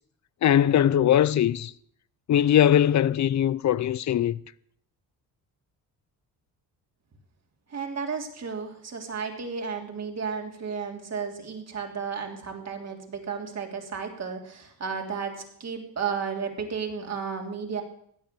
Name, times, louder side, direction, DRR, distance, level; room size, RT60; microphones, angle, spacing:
voice 1, 0.4-1.7 2.3-4.4, left 10 dB, 45° left, 0.6 m, -21 dB
voice 2, 7.7-17.8, right 6 dB, 40° right, 3.2 m, -33 dB
16.5 x 10.5 x 6.9 m
cardioid pair, 120°, 38 cm